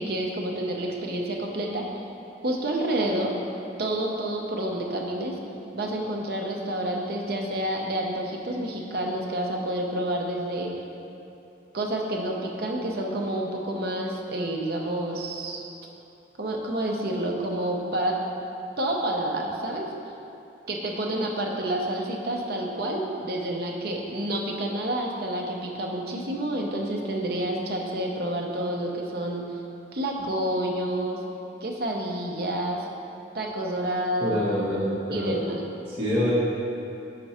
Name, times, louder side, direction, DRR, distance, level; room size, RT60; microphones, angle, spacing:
voice 1, 0.0-1.8 2.4-3.3 3.8-5.4 5.7-10.7 11.7-15.6 16.4-18.2 18.8-19.9 20.7-29.5 29.9-31.2 31.6-32.8 33.3-34.4 35.1-35.7, right 1 dB, 55° right, 0 dB, 0.7 m, -29 dB
voice 2, 34.2-35.4 35.9-36.3, equal, 35° right, -12 dB, 1.1 m, -26 dB
5.8 x 4.5 x 4.2 m, 2.8 s
head